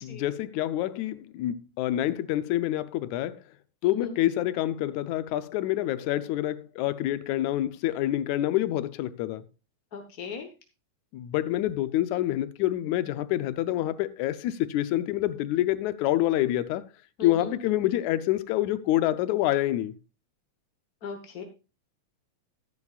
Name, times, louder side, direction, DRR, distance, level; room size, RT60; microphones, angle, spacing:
voice 1, 0.0-3.4 3.8-9.4 11.1-16.9 17.2-20.0, left 14 dB, 85° left, 2.1 m, -27 dB
voice 2, 9.9-10.5 17.2-17.5 21.0-21.4, left 5 dB, 55° left, 1.0 m, -37 dB
14.5 x 9.7 x 2.4 m
omnidirectional pair, 3.3 m